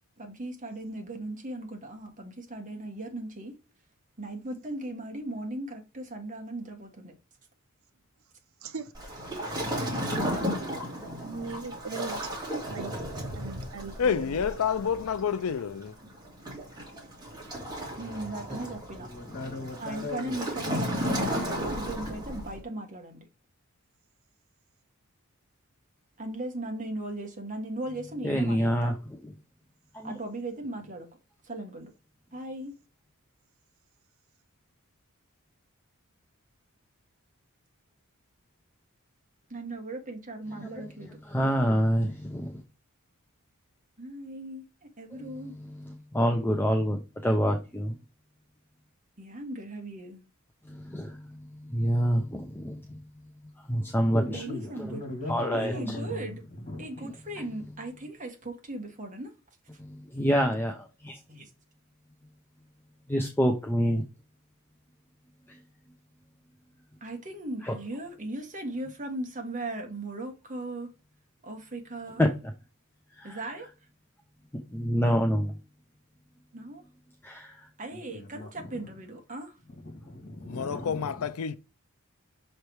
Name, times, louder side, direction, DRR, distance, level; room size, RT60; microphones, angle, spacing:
voice 1, 0.2-3.6 4.2-7.1 18.0-19.1 19.8-23.2 26.2-28.9 30.0-31.1 31.4-31.9 32.3-32.7 39.5-41.2 44.0-45.5 49.2-50.2 54.3-55.0 55.5-56.4 56.8-59.3 61.3-61.5 67.0-70.9 71.4-72.2 73.2-73.7 76.5-76.8 77.8-79.6, right 2 dB, 35° right, 1.5 m, -38 dB
voice 2, 8.6-8.9 9.5-9.9 11.2-12.3 12.7-12.9 13.4-14.4, right 4 dB, 65° right, 0.8 m, -39 dB
Waves surf, 8.9-22.6, equal, 20° right, 2.2 m, -34 dB
voice 3, 14.0-16.0 80.5-81.6, left 7 dB, 75° left, 0.5 m, -28 dB
voice 4, 19.0-20.4 54.0-54.2 54.5-57.1 77.9-79.0 79.7-81.3, left 1 dB, 40° left, 2.2 m, -39 dB
voice 5, 28.2-29.2 29.9-30.1 40.5-42.6 45.1-48.0 50.7-53.0 53.7-55.0 55.3-56.0 57.0-57.7 59.9-61.2 63.1-64.0 65.5-65.6 67.6-67.8 72.2-72.5 73.2-73.7 74.7-75.5 77.2-77.7 80.7-80.8, equal, 10° left, 0.7 m, -28 dB
6.7 x 3.3 x 4.5 m
head